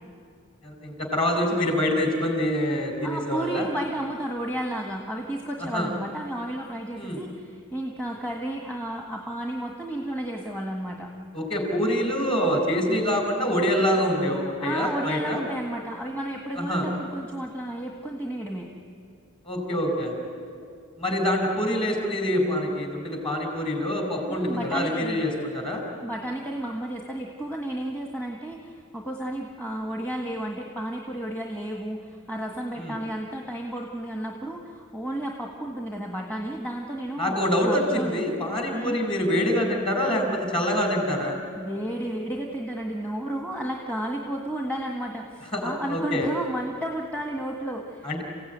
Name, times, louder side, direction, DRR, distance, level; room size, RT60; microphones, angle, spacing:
voice 1, 0.6-3.7 5.6-5.9 6.9-7.2 11.3-15.4 16.6-16.9 19.4-20.1 21.0-25.8 32.8-33.0 37.2-41.4 45.5-46.3 48.0-48.2, equal, 25° left, 3 dB, 4.7 m, -25 dB
voice 2, 3.0-11.1 14.6-18.7 24.3-25.2 26.0-37.4 37.6-38.1 38.7-39.0 41.6-48.2, right 1 dB, 10° left, 0 dB, 1.6 m, -32 dB
28.5 x 16.0 x 9.4 m, 2.3 s
head